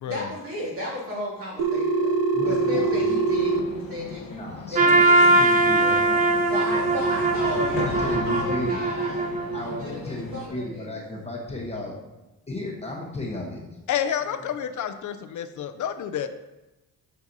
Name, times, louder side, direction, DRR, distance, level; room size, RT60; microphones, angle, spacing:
voice 1, 0.0-5.4 6.5-9.2 9.6-11.0, left 1 dB, 40° right, -6 dB, 2.4 m, -34 dB
Telephone, 1.6-3.6, right 4 dB, 70° right, 0.6 m, -23 dB
voice 2, 2.3-3.0 4.3-6.2 6.7-8.8 9.5-11.9 12.5-13.7, left 2 dB, 20° left, -2 dB, 1.0 m, -34 dB
sound 1, 2.4-10.5, left 5 dB, 85° left, 0.9 m, -37 dB
Trumpet, 4.7-9.8, right 2 dB, 25° right, 0.4 m, -21 dB
voice 3, 13.9-16.3, left 9 dB, 60° left, 9 dB, 0.4 m, -29 dB
7.1 x 6.7 x 2.7 m, 1.0 s
wide cardioid pair, 165°, 34 cm